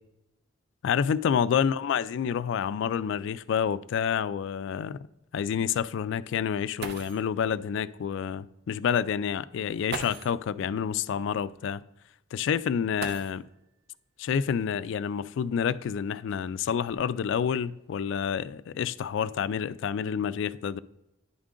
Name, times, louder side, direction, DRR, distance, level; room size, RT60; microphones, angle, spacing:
voice 1, 0.8-5.0 5.3-11.8 12.3-13.4 14.2-20.8, left 7 dB, 65° left, 0.3 m, -28 dB
sound 1, 6.5-6.6 6.8-7.4 8.6-8.7 9.9-10.5 12.9-13.7 15.1-15.2 15.9-17.4 18.1-18.4 18.8-19.2, right 4 dB, 55° right, 0.6 m, -41 dB
10.5 x 3.7 x 3.7 m
head